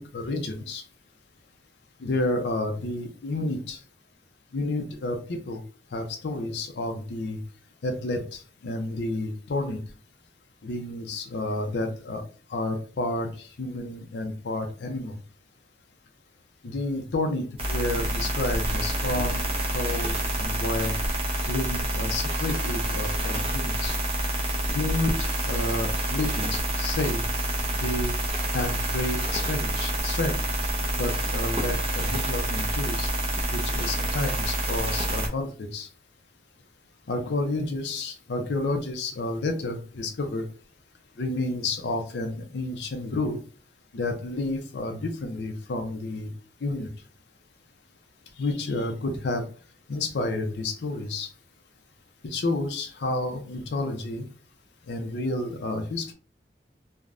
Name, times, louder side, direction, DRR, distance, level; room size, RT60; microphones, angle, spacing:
voice 1, 0.1-0.8 2.0-3.8 4.5-5.6 5.9-7.4 7.8-9.8 10.6-12.2 12.5-13.3 13.6-15.1 16.6-19.4 19.7-20.9 21.5-24.0 24.7-27.3 27.7-28.1 28.5-30.4 30.9-33.1 33.5-35.9 37.1-40.4 41.2-43.4 43.9-46.3 46.6-46.9 48.4-49.4 49.9-51.3 52.2-54.2 54.9-56.1, left 2 dB, 80° left, 5 dB, 0.5 m, -30 dB
sound 1, 17.6-35.3, right 1 dB, 30° right, 0.6 m, -27 dB
3.3 x 2.1 x 2.4 m, 0.36 s
head